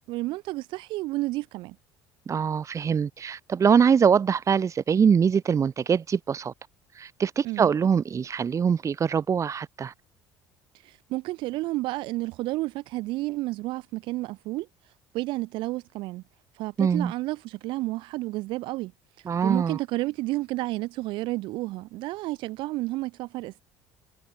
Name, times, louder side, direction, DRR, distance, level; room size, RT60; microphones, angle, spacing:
voice 1, 0.1-1.8 7.4-7.7 10.8-14.7 15.1-16.2 16.6-18.9 19.4-23.6, right 19 dB, 70° right, 3.0 m, -31 dB
voice 2, 2.3-6.5 7.0-9.9 16.8-17.1 19.3-19.8, right 7 dB, 35° right, 1.9 m, -23 dB
supercardioid pair, 80°, 9 cm